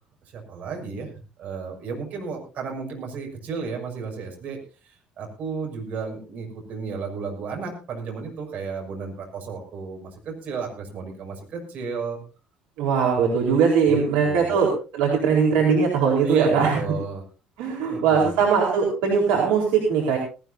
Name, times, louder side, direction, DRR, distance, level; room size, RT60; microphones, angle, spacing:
voice 1, 0.3-1.1 1.4-4.6 4.8-12.2 13.9-14.5 16.2-17.2 17.9-18.4, right 5 dB, 55° right, 2 dB, 6.6 m, -33 dB
voice 2, 12.8-16.8 17.6-20.2, right 6 dB, 70° right, -1 dB, 4.2 m, -20 dB
18.5 x 18.0 x 2.7 m, 0.34 s
hypercardioid pair, 55°, 3 cm